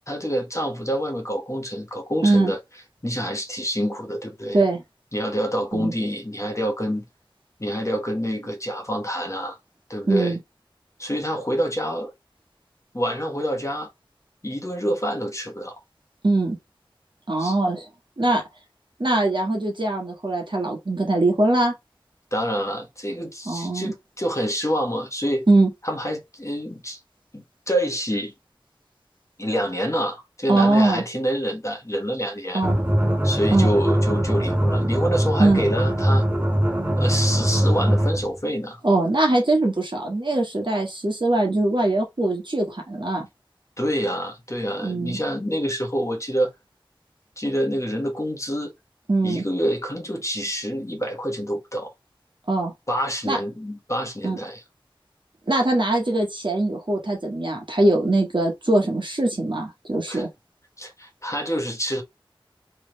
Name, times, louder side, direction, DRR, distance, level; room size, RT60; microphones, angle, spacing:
voice 1, 0.1-2.6 3.0-4.6 5.1-7.0 7.6-9.5 9.9-10.4 11.0-12.1 12.9-13.9 14.4-15.8 17.4-17.6 22.3-25.5 25.8-27.0 27.3-28.3 29.4-32.6 33.2-36.2 37.0-38.8 43.8-46.5 47.4-48.7 49.2-51.9 52.9-54.6 60.1-60.2 60.8-62.0, equal, 35° left, 1.3 m, -27 dB
voice 2, 10.1-10.4 16.2-16.6 17.3-17.9 18.2-18.4 19.0-21.7 23.5-23.9 25.5-25.7 30.5-31.0 32.5-32.8 33.5-33.7 35.4-35.6 38.8-43.3 44.8-45.2 49.1-49.4 52.5-52.7 53.2-53.4 54.2-54.4 55.5-60.3, right 2 dB, 60° right, 1.5 m, -21 dB
sound 1, 32.6-38.3, equal, 20° right, 1.1 m, -21 dB
3.4 x 3.3 x 3.1 m
wide cardioid pair, 45°, 9 cm